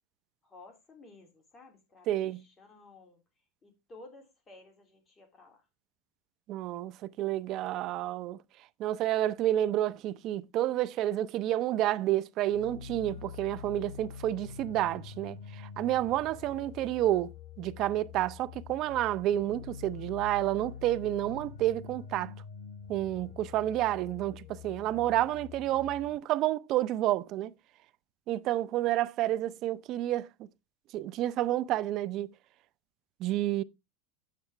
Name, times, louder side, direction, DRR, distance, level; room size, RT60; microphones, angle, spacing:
voice 1, 0.4-3.2 3.6-5.7, left 2 dB, 20° left, 2.9 m, -54 dB
voice 2, 2.1-2.4 6.5-8.4 8.8-17.3 17.6-22.3 22.9-27.5 28.3-30.3 30.9-32.3 33.2-33.6, right 13 dB, 45° right, 0.6 m, -30 dB
sound 1, 12.5-26.2, left 7 dB, 85° left, 1.4 m, -46 dB
9.6 x 8.3 x 3.4 m
supercardioid pair, 140°, 0 cm